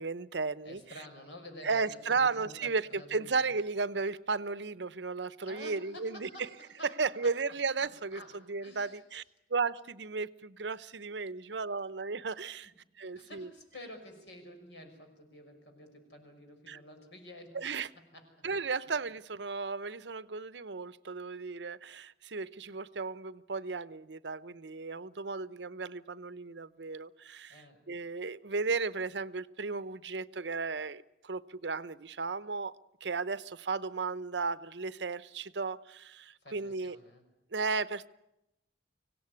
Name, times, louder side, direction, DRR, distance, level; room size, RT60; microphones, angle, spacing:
voice 1, 0.0-0.8 1.6-6.3 7.0-8.2 8.5-9.2 9.5-13.5 16.7-16.8 17.5-17.9 18.4-27.6 27.9-32.7 33.0-37.0 37.5-38.1, right 4 dB, 80° right, 0.8 m, -34 dB
voice 2, 0.6-3.3 5.4-7.3 7.8-9.0 13.1-17.6 17.9-18.5 27.5-27.8 36.4-37.2, left 1 dB, 85° left, 6.1 m, -50 dB
25.0 x 17.0 x 9.6 m
head